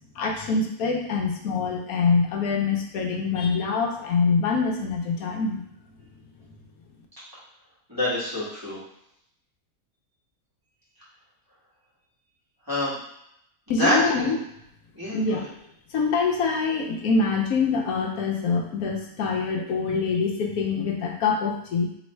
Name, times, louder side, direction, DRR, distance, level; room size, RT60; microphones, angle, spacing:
voice 1, 0.2-5.6 13.7-14.4 15.1-15.4 15.9-21.9, left 4 dB, 80° left, 2 dB, 1.1 m, -25 dB
voice 2, 7.9-8.8 12.7-13.0 13.8-14.3 14.9-15.4, left 1 dB, 15° right, -10 dB, 1.6 m, -26 dB
3.3 x 3.2 x 4.3 m, 0.75 s
omnidirectional pair, 1.5 m